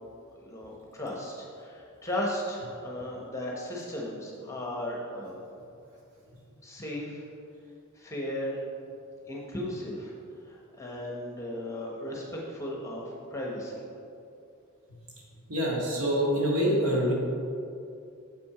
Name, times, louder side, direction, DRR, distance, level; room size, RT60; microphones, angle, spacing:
voice 1, 0.4-5.4 6.6-7.2 7.9-8.6 9.3-10.1 10.5-13.8, left 1 dB, 15° left, -2 dB, 0.9 m, -36 dB
voice 2, 15.5-17.1, equal, 80° right, -4 dB, 1.9 m, -25 dB
7.3 x 5.9 x 4.8 m, 2.6 s
head